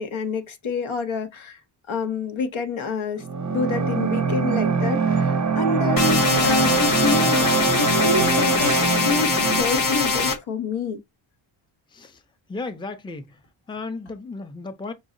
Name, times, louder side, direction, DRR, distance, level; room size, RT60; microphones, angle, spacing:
voice 1, 0.0-1.6 1.9-3.2 3.5-7.5 7.7-11.0, left 4 dB, 75° left, 0.9 m, -27 dB
sound 1, 3.2-9.6, right 5 dB, 40° right, 0.6 m, -23 dB
sound 2, 6.0-10.4, left 4 dB, 45° left, 0.8 m, -22 dB
voice 2, 11.9-12.2 12.5-13.4 13.7-14.9, left 3 dB, 10° left, 0.5 m, -34 dB
5.4 x 2.0 x 3.7 m
wide cardioid pair, 110°, 48 cm